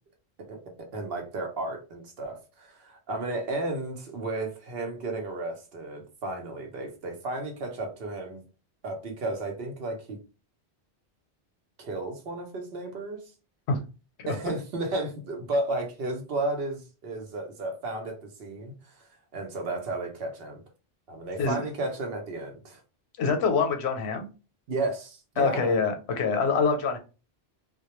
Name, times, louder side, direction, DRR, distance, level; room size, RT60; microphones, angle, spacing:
voice 1, 0.9-8.4 8.8-10.2 11.8-13.2 14.3-20.6 21.1-22.8 24.7-25.8, right 2 dB, 70° right, 3 dB, 0.9 m, -33 dB
voice 2, 23.2-24.3 25.4-27.0, left 4 dB, 90° left, 5 dB, 0.9 m, -25 dB
2.2 x 2.1 x 2.9 m, 0.32 s
omnidirectional pair, 1.1 m